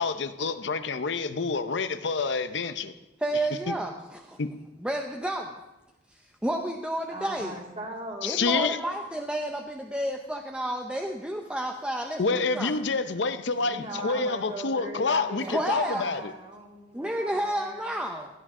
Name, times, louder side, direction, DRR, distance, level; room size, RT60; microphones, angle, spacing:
voice 1, 0.0-2.9 3.7-3.8 4.4-4.5 8.2-8.8 12.2-16.3, left 4 dB, 65° left, 11 dB, 0.7 m, -28 dB
voice 2, 3.2-4.4 4.8-5.5 6.1-7.5 8.2-12.7 14.2-14.3 15.5-16.1 16.9-18.3, right 1 dB, 5° right, 2 dB, 0.6 m, -31 dB
voice 3, 7.1-8.5 13.1-17.9, right 2 dB, 35° right, -1 dB, 2.3 m, -39 dB
16.0 x 11.0 x 3.7 m, 1.0 s
head